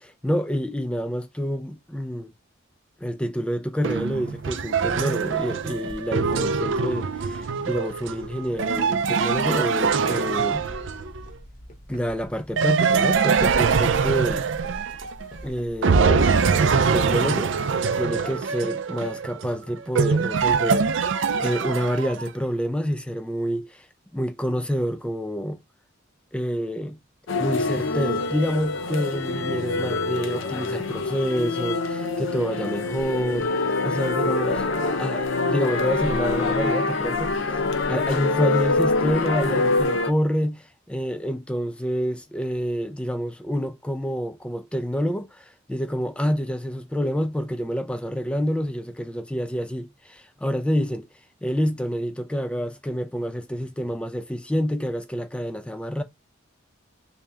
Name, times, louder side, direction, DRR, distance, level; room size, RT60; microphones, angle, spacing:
voice 1, 0.0-2.3 3.0-10.7 11.9-14.5 15.4-16.3 16.7-17.6 18.0-21.1 21.4-23.9 24.1-25.6 26.3-27.0 27.4-34.7 35.0-37.6 37.9-51.1 51.4-56.0, equal, 5° left, 0.4 m, -28 dB
sound 1, 3.8-18.4, equal, 40° left, 1.0 m, -43 dB
sound 2, 3.8-11.2 12.6-15.4 15.8-22.3, right 5 dB, 65° right, 0.4 m, -23 dB
sound 3, 27.3-40.1, left 3 dB, 70° left, 0.5 m, -25 dB
3.2 x 2.8 x 3.4 m
head